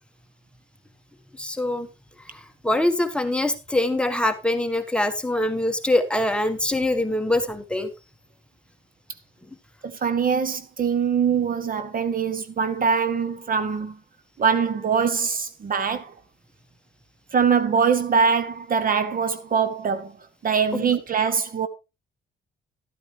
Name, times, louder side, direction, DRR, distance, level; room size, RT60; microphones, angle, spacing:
voice 1, 1.3-1.9 2.2-7.9 20.7-20.9, left 1 dB, 5° left, 1.4 m, -24 dB
voice 2, 9.8-14.0 14.4-16.1 17.3-20.2 20.4-21.7, right 6 dB, 45° right, 1.0 m, -23 dB
12.5 x 9.1 x 3.3 m
cardioid pair, 90°, 20 cm